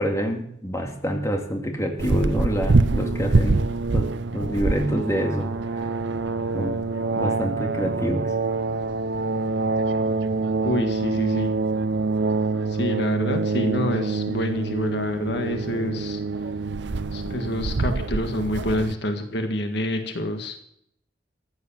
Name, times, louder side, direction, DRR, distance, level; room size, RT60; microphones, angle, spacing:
voice 1, 0.0-3.6 3.9-4.1 4.3-5.5 6.5-6.8 7.2-8.3, equal, 15° left, 2 dB, 2.3 m, -26 dB
sound 1, 2.0-19.0, right 3 dB, 65° right, 0.6 m, -25 dB
voice 2, 10.6-11.5 12.7-16.2 17.1-20.6, left 1 dB, 65° left, 5 dB, 1.7 m, -27 dB
14.5 x 9.6 x 7.3 m, 0.71 s
head